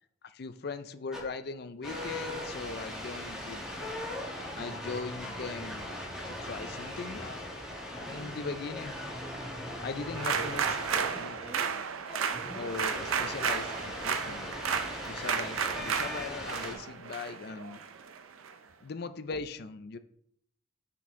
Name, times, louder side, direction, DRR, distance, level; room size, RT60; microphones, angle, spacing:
voice 1, 0.2-3.6 4.6-5.9 6.2-7.4 7.9-8.9 9.8-11.4 12.5-14.5 15.0-17.8 18.8-20.0, left 4 dB, 50° left, 11 dB, 0.4 m, -40 dB
sound 1, 1.1-1.2 1.8-16.7, left 1 dB, 5° right, 1.6 m, -39 dB
sound 2, 10.1-18.5, right 6 dB, 90° right, 0.6 m, -33 dB
6.1 x 6.0 x 3.7 m, 0.70 s
head